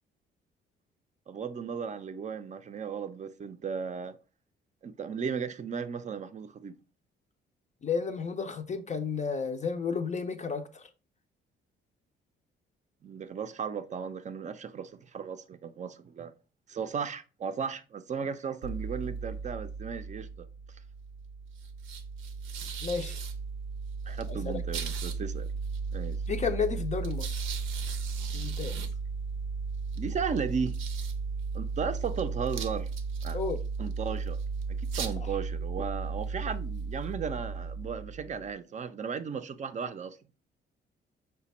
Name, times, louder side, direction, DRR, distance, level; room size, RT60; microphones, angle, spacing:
voice 1, 1.3-4.2 4.8-6.7 13.0-16.3 16.7-20.5 24.1-25.5 25.9-26.2 30.0-30.8 31.5-32.9 33.2-33.4 33.8-34.4 34.7-40.2, right 6 dB, 35° right, 0.5 m, -35 dB
voice 2, 7.8-10.9 22.8-23.2 24.3-24.6 26.3-27.4 28.3-28.8 33.3-33.6, left 5 dB, 35° left, 0.4 m, -32 dB
sound 1, 18.6-38.5, right 4 dB, 90° right, 0.6 m, -35 dB
4.9 x 2.2 x 4.1 m
cardioid pair, 90°, 20 cm